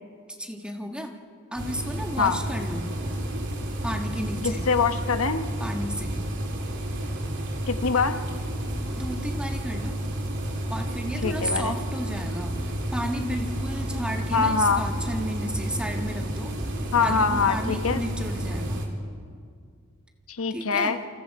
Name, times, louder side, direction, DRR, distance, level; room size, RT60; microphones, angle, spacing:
voice 1, 0.3-1.1 1.5-2.9 3.8-4.7 5.6-6.2 9.0-10.0 10.7-12.6 12.9-16.6 17.0-18.8 20.5-20.9, equal, 5° right, 3 dB, 1.6 m, -33 dB
sound 1, 1.6-18.9, right 1 dB, 60° right, 3.2 m, -31 dB
voice 2, 4.4-5.4 7.7-8.2 11.2-11.7 14.3-14.8 16.9-18.0 20.3-21.0, left 5 dB, 80° left, 8 dB, 1.1 m, -24 dB
28.5 x 24.5 x 4.8 m, 2.1 s
head